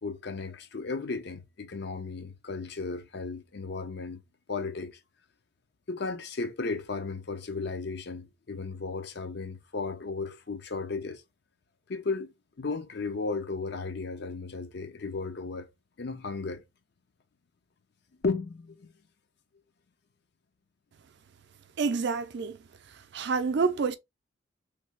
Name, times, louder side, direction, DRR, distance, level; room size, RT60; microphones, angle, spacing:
voice 1, 0.0-4.2 4.5-5.0 5.9-11.2 11.9-15.7 16.0-16.6 18.2-18.9, left 4 dB, 55° left, 0.5 m, -35 dB
voice 2, 21.8-22.6 23.1-24.0, right 4 dB, 55° right, 0.4 m, -27 dB
3.2 x 2.3 x 3.2 m
head